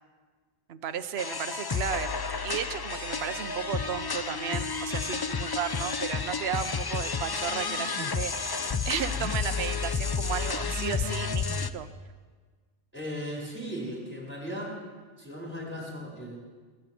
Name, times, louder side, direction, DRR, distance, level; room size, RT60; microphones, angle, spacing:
voice 1, 0.7-2.1 2.4-11.9, right 9 dB, 75° right, 10 dB, 1.0 m, -34 dB
sound 1, 1.2-11.7, left 5 dB, 35° left, 0.4 m, -31 dB
voice 2, 12.9-14.7 15.2-16.4, equal, 10° right, -3 dB, 4.7 m, -37 dB
19.5 x 7.9 x 9.2 m, 1.5 s
omnidirectional pair, 1.1 m